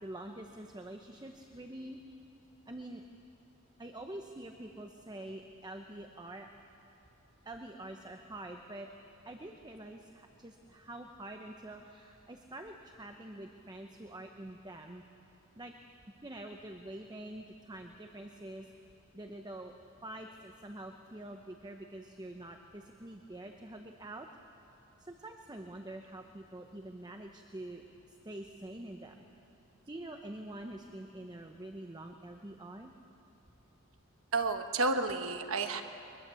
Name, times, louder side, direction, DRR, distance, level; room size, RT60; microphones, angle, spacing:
voice 1, 0.0-2.0 2.7-3.0 3.8-6.5 7.4-8.9 9.2-15.0 15.6-15.7 16.2-18.7 19.1-19.7 20.0-24.3 25.0-29.2 29.9-32.9, right 1 dB, 20° right, 4 dB, 0.8 m, -46 dB
voice 2, 34.3-35.8, right 3 dB, 65° right, 7 dB, 1.2 m, -31 dB
22.5 x 21.5 x 7.0 m, 3.0 s
head